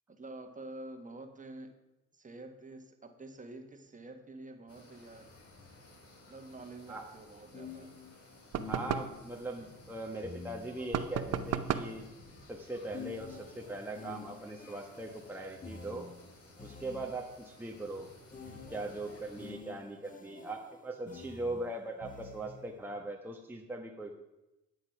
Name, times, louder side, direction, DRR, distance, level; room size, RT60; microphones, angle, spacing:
voice 1, 0.1-1.7 2.1-5.3 6.3-7.9 20.2-20.4, right 2 dB, 25° right, 5 dB, 1.6 m, -48 dB
sound 1, 4.7-19.5, left 2 dB, 50° left, 3.1 m, -56 dB
sound 2, 6.5-6.7 7.5-9.3 10.2-12.1 12.9-17.4 18.3-22.8, left 5 dB, 25° left, 1.3 m, -49 dB
sound 3, 8.5-9.2 10.9-12.0, right 9 dB, 55° right, 0.8 m, -33 dB
voice 2, 8.7-12.1 12.5-16.1 16.6-18.1 18.5-24.1, right 2 dB, 5° right, 0 dB, 1.2 m, -40 dB
11.5 x 8.2 x 5.9 m, 0.99 s
cardioid pair, 90°, 30 cm